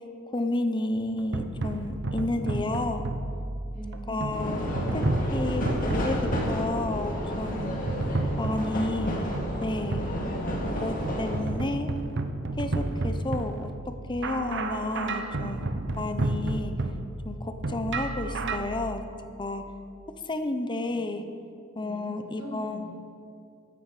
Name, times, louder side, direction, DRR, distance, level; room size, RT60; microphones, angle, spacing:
voice 1, 0.3-3.1 4.1-4.6 4.9-5.0 5.3-6.2 6.5-7.7 8.4-9.3 9.6-10.1 10.8-11.9 12.6-13.7 14.1-15.7 16.0-16.7 17.3-19.0 19.4-19.6 20.3-21.2 21.8-22.9, left 2 dB, 25° left, 8 dB, 0.8 m, -31 dB
sound 1, 1.0-18.6, right 2 dB, 60° right, 0.8 m, -32 dB
voice 2, 3.7-4.4 20.8-21.2 21.8-22.9, right 1 dB, 35° right, -6 dB, 3.5 m, -44 dB
sound 2, 4.3-11.4, equal, 45° left, 2.5 m, -31 dB
15.5 x 11.5 x 5.0 m, 2.6 s
head